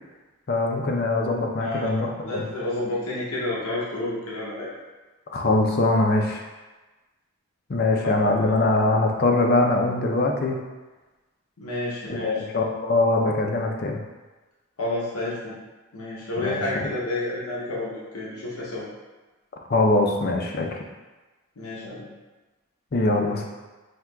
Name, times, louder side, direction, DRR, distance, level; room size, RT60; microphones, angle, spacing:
voice 1, 0.5-2.5 5.3-6.4 7.7-10.6 12.1-14.0 16.4-16.9 19.7-20.7 22.9-23.5, left 2 dB, 45° left, 2 dB, 0.4 m, -22 dB
voice 2, 1.6-2.0 2.3-4.7 11.6-12.4 14.8-15.5 15.9-18.9 21.6-22.1, left 2 dB, 85° left, -6 dB, 0.8 m, -30 dB
5.8 x 2.9 x 2.2 m, 1.2 s
head